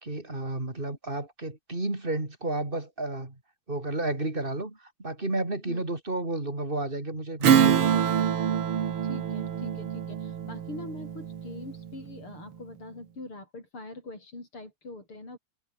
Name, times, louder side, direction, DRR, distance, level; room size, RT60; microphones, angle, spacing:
voice 1, 0.0-3.4 3.7-7.9, right 2 dB, 25° right, 4.4 m, -32 dB
Strum, 7.4-12.3, right 8 dB, 85° right, 2.6 m, -25 dB
voice 2, 9.0-15.4, left 2 dB, 80° left, 9.0 m, -43 dB
omnidirectional pair, 2.4 m